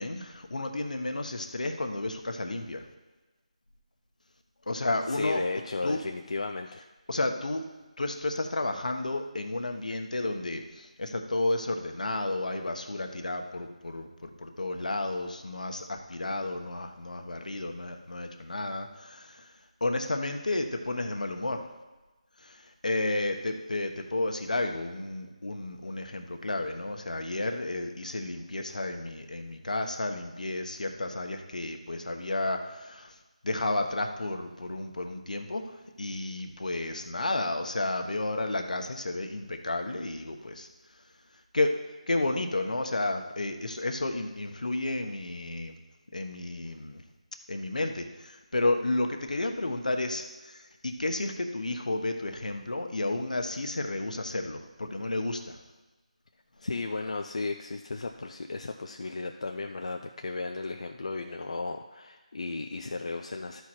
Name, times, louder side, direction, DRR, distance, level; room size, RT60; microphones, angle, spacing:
voice 1, 0.0-2.8 4.7-5.4 5.8-6.0 7.1-7.7 8.0-19.5 19.8-21.7 22.4-33.2 33.4-40.7 41.5-41.8 42.1-45.7 46.1-47.0 47.5-55.6, left 2 dB, 80° left, 5 dB, 1.2 m, -32 dB
voice 2, 5.1-6.9 56.6-63.6, left 3 dB, 55° left, 4 dB, 0.5 m, -34 dB
13.0 x 4.7 x 4.4 m, 1.2 s
figure-of-eight pair, 175°, 4 cm